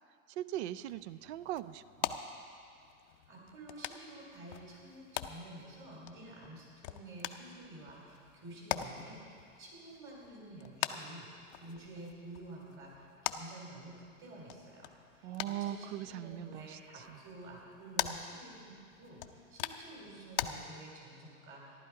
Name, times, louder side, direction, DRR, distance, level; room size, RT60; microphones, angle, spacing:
voice 1, 0.4-2.2 15.2-16.8 17.1-17.2, right 13 dB, 50° right, 16 dB, 0.4 m, -40 dB
sound 1, 0.7-20.5, left 12 dB, 40° left, 0.6 m, -43 dB
voice 2, 3.1-21.8, right 1 dB, 25° right, -2 dB, 3.9 m, -50 dB
14.5 x 11.5 x 4.8 m, 2.3 s
supercardioid pair, 145°, 43 cm